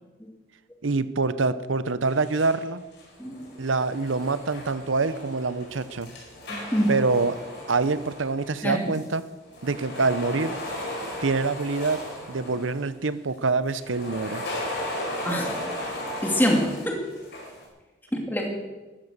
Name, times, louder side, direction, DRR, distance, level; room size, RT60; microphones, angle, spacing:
voice 1, 0.8-2.8 3.6-6.1 6.9-7.4 7.7-9.2 9.6-10.6 11.2-14.4, right 3 dB, 80° right, 15 dB, 0.8 m, -25 dB
sound 1, 2.0-2.6 2.9-9.2 9.5-12.9 13.7-17.6, left 1 dB, 55° left, 4.9 m, -36 dB
voice 2, 6.5-6.9 8.6-8.8 15.2-15.6 16.2-17.0 18.3-18.5, equal, 10° left, 1 dB, 2.7 m, -25 dB
14.5 x 13.0 x 6.8 m, 1.2 s
head